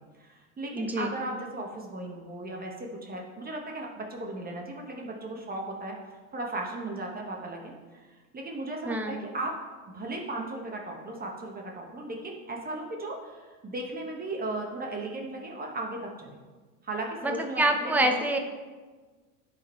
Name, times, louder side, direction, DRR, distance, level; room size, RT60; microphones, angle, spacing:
voice 1, 0.2-6.0 6.3-9.6 9.9-16.4 16.8-18.1, right 2 dB, 20° right, 0 dB, 1.3 m, -36 dB
voice 2, 0.7-1.1 8.8-9.3 17.2-18.4, right 1 dB, 5° right, 4 dB, 0.7 m, -26 dB
10.5 x 4.4 x 4.4 m, 1.3 s
supercardioid pair, 110°, 45 cm